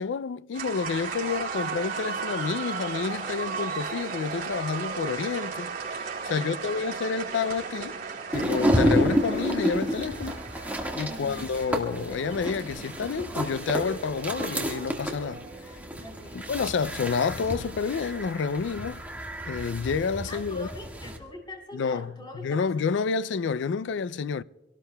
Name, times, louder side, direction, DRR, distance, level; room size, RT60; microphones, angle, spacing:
voice 1, 0.0-6.0 6.3-8.0 8.3-10.4 11.0-15.7 16.3-19.0 19.5-20.7 21.7-22.1 22.4-24.4, left 5 dB, 70° left, 0.4 m, -29 dB
sound 1, 0.5-18.2, right 5 dB, 50° right, 3.8 m, -37 dB
voice 2, 6.3-6.8 11.1-11.5 16.0-16.5 20.3-22.7, left 1 dB, 25° left, 3.9 m, -43 dB
sound 2, 8.3-21.2, equal, 10° right, 1.7 m, -30 dB
26.5 x 18.5 x 2.3 m
head